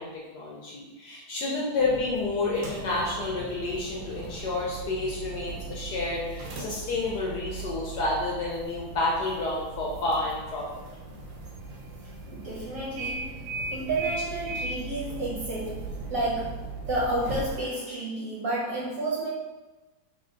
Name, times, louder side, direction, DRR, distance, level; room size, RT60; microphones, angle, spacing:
voice 1, 0.0-10.8, left 2 dB, 70° left, -4 dB, 1.0 m, -30 dB
sound 1, 1.7-17.6, right 3 dB, 75° right, 1.3 m, -38 dB
voice 2, 12.3-13.4 13.7-19.3, right 2 dB, 55° right, -7 dB, 1.0 m, -31 dB
3.5 x 2.2 x 3.8 m, 1.1 s
omnidirectional pair, 2.2 m